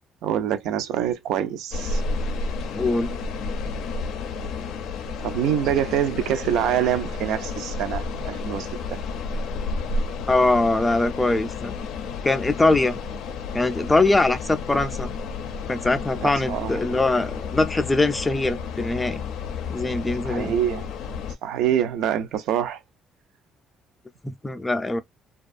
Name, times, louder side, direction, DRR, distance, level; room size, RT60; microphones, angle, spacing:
voice 1, 0.2-2.0 5.2-9.0 16.2-16.8 20.2-20.9 21.4-22.8, right 10 dB, 75° right, 0.5 m, -25 dB
sound 1, 1.7-21.4, left 4 dB, 75° left, 0.5 m, -31 dB
voice 2, 2.7-3.1 10.3-11.7 12.2-13.0 13.5-15.1 15.7-19.2 19.7-20.5 24.2-25.0, left 2 dB, 10° left, 0.4 m, -22 dB
2.5 x 2.3 x 2.4 m
cardioid pair, 140°, 0 cm